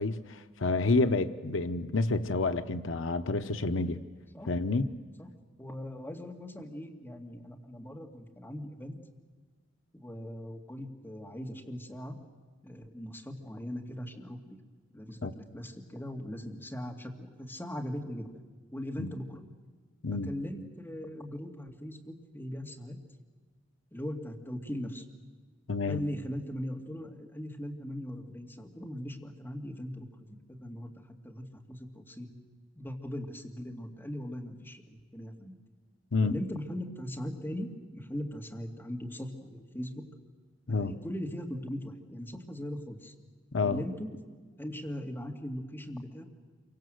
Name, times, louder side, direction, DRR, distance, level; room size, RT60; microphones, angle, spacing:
voice 1, 0.0-4.0 4.5-4.9 15.2-15.3 19.0-19.1 20.0-20.3 25.7-26.0 36.1-36.3 40.7-40.9 43.5-43.8, left 3 dB, 80° left, 10 dB, 0.9 m, -29 dB
voice 2, 5.6-9.0 9.9-12.2 12.6-14.6 14.9-18.4 18.7-19.4 20.3-23.0 23.9-25.0 25.8-30.9 31.2-32.3 32.8-35.6 36.2-39.9 40.7-43.1 43.6-44.1 44.6-46.2, equal, 10° left, 0 dB, 2.5 m, -39 dB
28.0 x 25.0 x 7.9 m, 1.4 s
head